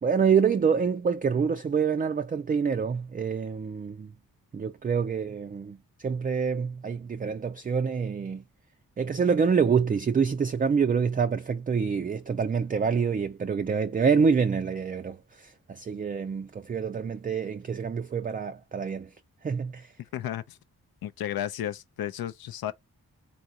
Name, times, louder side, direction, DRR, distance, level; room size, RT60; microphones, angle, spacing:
voice 1, 0.0-4.1 4.5-8.4 9.0-19.1 19.4-19.9, right 6 dB, 25° right, 0.3 m, -26 dB
voice 2, 20.1-20.6 21.0-22.7, left 11 dB, 70° left, 0.6 m, -33 dB
3.6 x 2.5 x 2.7 m
supercardioid pair, 40°, 38 cm